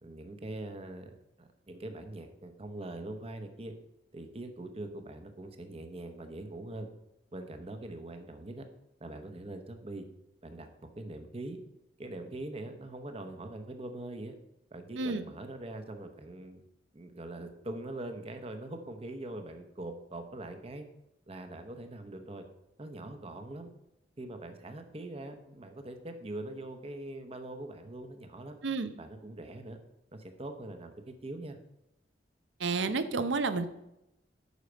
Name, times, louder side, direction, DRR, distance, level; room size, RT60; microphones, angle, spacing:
voice 1, 0.0-3.7 4.1-6.9 7.3-8.6 9.0-10.1 10.4-10.7 11.0-11.6 12.0-14.3 14.7-16.6 16.9-20.9 21.3-22.4 22.8-23.7 24.2-28.6 29.0-29.8 30.1-31.6, right 2 dB, 35° right, 6 dB, 0.8 m, -42 dB
voice 2, 32.6-33.7, right 4 dB, 85° right, 11 dB, 0.7 m, -30 dB
8.2 x 5.7 x 5.1 m, 0.88 s
head